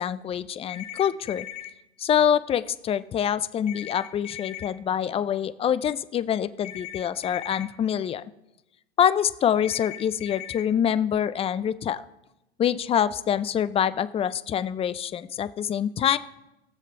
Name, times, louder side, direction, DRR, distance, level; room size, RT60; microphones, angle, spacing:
voice 1, 0.0-1.5 2.0-8.2 9.0-12.0 12.6-16.2, left 9 dB, 20° left, 15 dB, 0.4 m, -25 dB
sound 1, 0.7-1.7 3.7-4.7 6.6-7.6 9.6-10.6, left 12 dB, 75° left, 1.8 m, -38 dB
22.0 x 7.4 x 2.8 m, 0.94 s
hypercardioid pair, 100°, 34 cm